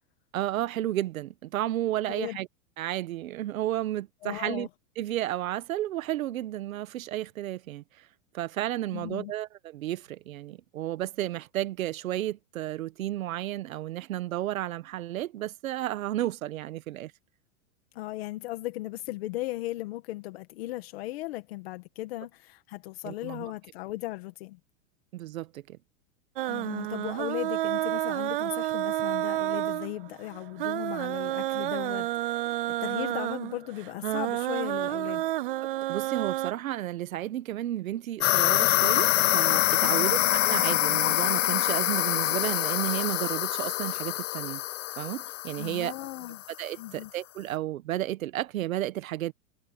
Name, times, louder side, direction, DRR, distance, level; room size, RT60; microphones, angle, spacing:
voice 1, 0.3-2.5 2.8-4.7 5.0-8.1 8.3-17.1 23.0-23.5 25.1-25.8 35.9-44.6 45.0-45.9 46.6-49.3, right 14 dB, 70° right, 1.4 m, -32 dB
voice 2, 4.2-4.7 8.9-9.3 18.0-24.6 26.5-32.4 32.8-35.3 39.8-40.2 45.5-46.4 46.8-47.1, left 17 dB, 45° left, 1.9 m, -37 dB
sound 1, 26.4-36.5, right 15 dB, 40° right, 0.5 m, -30 dB
sound 2, 38.2-46.4, left 16 dB, 60° left, 0.8 m, -25 dB
supercardioid pair, 170°, 42 cm